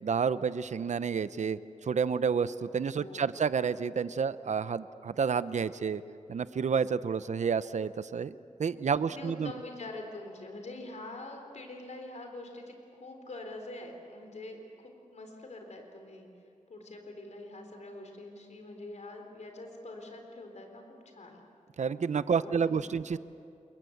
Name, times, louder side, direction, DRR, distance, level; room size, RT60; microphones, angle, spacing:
voice 1, 0.0-6.0 6.3-9.5 21.8-23.2, right 6 dB, 65° right, 15 dB, 0.7 m, -30 dB
voice 2, 3.0-3.4 8.9-16.3 16.7-21.4 22.3-23.0, left 2 dB, 65° left, 4 dB, 4.0 m, -45 dB
28.5 x 22.5 x 8.0 m, 2.5 s
wide cardioid pair, 105°, 13 cm